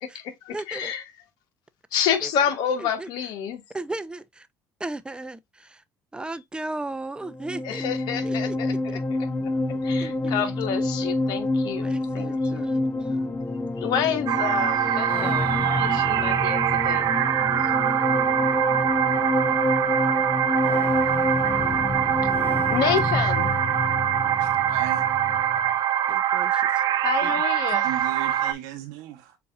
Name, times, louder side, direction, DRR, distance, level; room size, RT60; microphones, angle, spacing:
voice 1, 0.0-1.0 1.9-3.6 7.6-9.0 9.8-11.9 12.1-12.7 13.8-17.1 22.7-23.5 27.0-27.9, left 8 dB, 70° left, 1.1 m, -28 dB
voice 2, 0.5-0.9 2.2-2.3 2.8-3.1 3.7-4.5 4.8-5.8 6.1-7.8 8.2-9.0 10.0-10.4 11.8-13.2 26.1-26.8 27.2-27.4 27.7-27.9, right 2 dB, 10° right, 0.5 m, -36 dB
sound 1, 7.2-25.7, left 2 dB, 25° left, 0.7 m, -27 dB
sound 2, 14.3-28.5, right 11 dB, 60° right, 0.4 m, -24 dB
voice 3, 24.4-25.1 27.8-29.4, right 12 dB, 85° right, 1.0 m, -36 dB
6.8 x 2.7 x 2.4 m
supercardioid pair, 75°, 7 cm